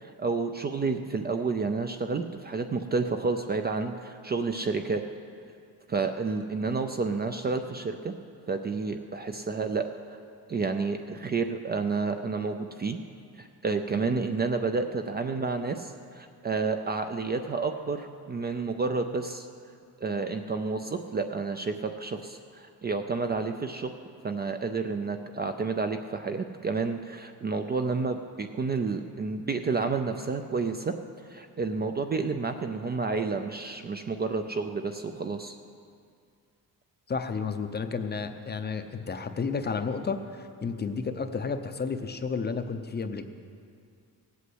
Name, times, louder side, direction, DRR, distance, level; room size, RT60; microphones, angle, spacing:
voice 1, 0.0-5.0 5.9-8.1 8.5-9.9 10.5-13.0 13.4-19.5 20.0-23.9 24.2-30.9 31.3-35.6, right 4 dB, 25° right, 6 dB, 0.4 m, -30 dB
voice 2, 37.1-43.3, left 5 dB, 25° left, 8 dB, 0.6 m, -32 dB
17.5 x 8.4 x 7.8 m, 2.3 s
cardioid pair, 180°, 39 cm